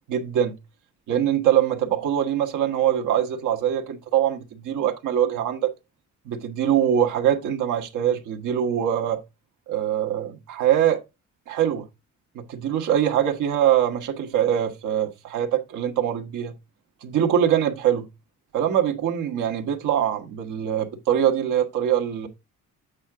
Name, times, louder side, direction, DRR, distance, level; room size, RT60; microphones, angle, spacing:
voice 1, 0.1-0.6 1.1-5.7 6.2-9.2 9.7-11.0 11.5-11.8 12.3-16.5 17.0-18.1 18.5-22.3, right 10 dB, 85° right, 1.5 m, -23 dB
8.6 x 4.7 x 3.7 m
cardioid pair, 90°, 30 cm